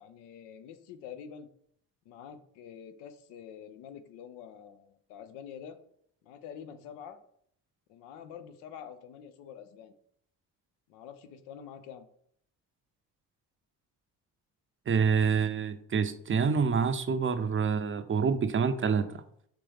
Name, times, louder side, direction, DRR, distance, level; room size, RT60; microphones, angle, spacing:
voice 1, 0.0-1.5 2.1-5.8 6.2-7.2 7.9-9.9 10.9-12.1, left 8 dB, 80° left, 10 dB, 0.6 m, -47 dB
voice 2, 14.9-19.2, right 5 dB, 30° right, 10 dB, 0.5 m, -27 dB
5.0 x 3.1 x 3.4 m, 0.66 s
supercardioid pair, 55°, 40 cm